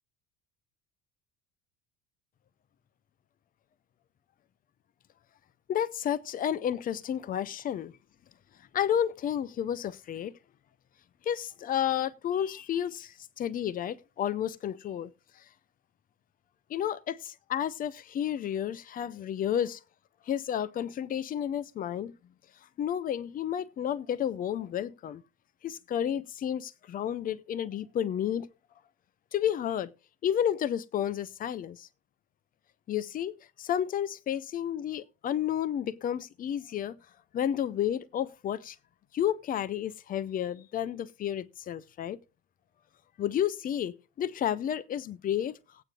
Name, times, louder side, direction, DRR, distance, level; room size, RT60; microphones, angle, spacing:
voice 1, 5.7-8.0 8.7-10.3 11.3-15.1 16.7-19.8 20.3-22.1 22.8-25.2 25.6-28.5 29.3-29.9 30.2-31.9 32.9-37.0 37.3-38.8 39.1-42.2 43.2-45.6, left 10 dB, 20° left, 0.5 m, -31 dB
19.0 x 8.8 x 2.4 m
figure-of-eight pair, 70°, 50 cm